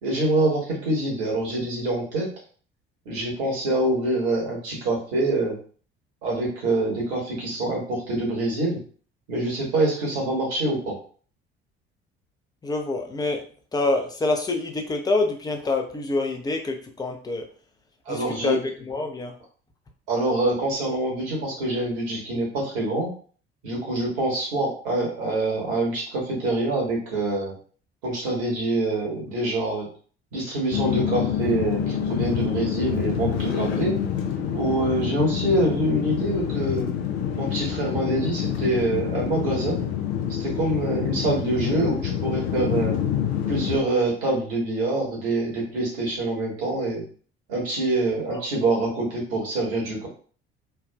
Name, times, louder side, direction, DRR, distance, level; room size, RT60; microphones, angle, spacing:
voice 1, 0.0-2.3 3.0-5.6 6.2-8.8 9.3-11.0 18.0-18.6 20.1-23.1 23.6-27.5 28.0-29.9 30.3-34.0 34.5-36.9 37.3-39.8 40.4-43.0 43.5-47.0 47.5-50.1, right 2 dB, 65° right, -3 dB, 1.4 m, -25 dB
voice 2, 12.6-13.4 13.7-17.5 18.1-18.6 18.9-19.3 48.3-48.4, left 2 dB, 10° left, 3 dB, 0.6 m, -26 dB
sound 1, 30.7-43.8, left 9 dB, 75° left, 0.5 m, -27 dB
3.3 x 2.3 x 2.3 m, 0.42 s
figure-of-eight pair, 55°, 32 cm